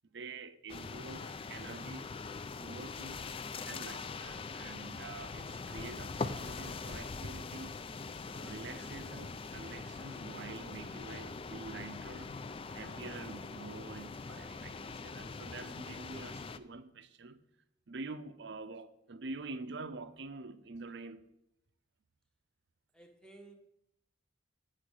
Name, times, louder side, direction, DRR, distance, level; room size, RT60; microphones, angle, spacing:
voice 1, 0.1-2.1 2.6-3.3 3.7-7.9 8.3-12.4 12.7-17.4 17.9-21.3, right 3 dB, 60° right, 0.6 m, -47 dB
sound 1, 0.7-16.6, left 4 dB, 30° left, 0.3 m, -42 dB
voice 2, 22.9-23.6, right 2 dB, 5° left, 1.0 m, -54 dB
8.6 x 6.3 x 6.3 m
head